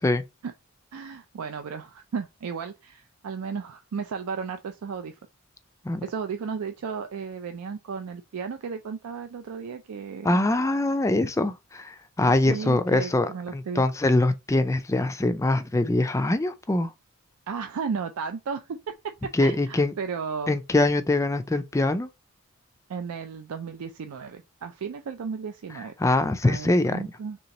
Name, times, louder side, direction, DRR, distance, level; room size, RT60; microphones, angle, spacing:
voice 1, 0.9-5.2 6.0-10.4 12.5-13.8 17.5-20.5 22.9-25.9 26.4-27.4, right 6 dB, 80° right, 0.4 m, -34 dB
voice 2, 10.2-16.9 19.3-19.9 20.5-22.1 26.0-27.0, left 2 dB, 15° left, 0.3 m, -23 dB
3.3 x 2.9 x 4.0 m
head